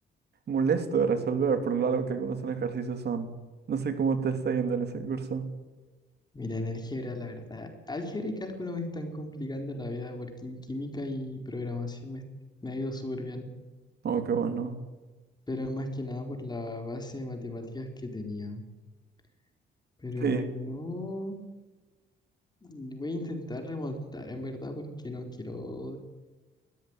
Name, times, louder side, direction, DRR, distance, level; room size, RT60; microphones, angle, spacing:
voice 1, 0.5-3.3 3.7-5.5 14.0-14.8 20.2-20.4, right 6 dB, 55° right, 8 dB, 3.0 m, -28 dB
voice 2, 6.3-12.2 12.6-13.5 15.5-18.6 20.0-21.4 22.6-26.0, left 2 dB, 20° left, 4 dB, 4.4 m, -36 dB
20.0 x 14.5 x 9.1 m, 1.2 s
cardioid pair, 90°, 20 cm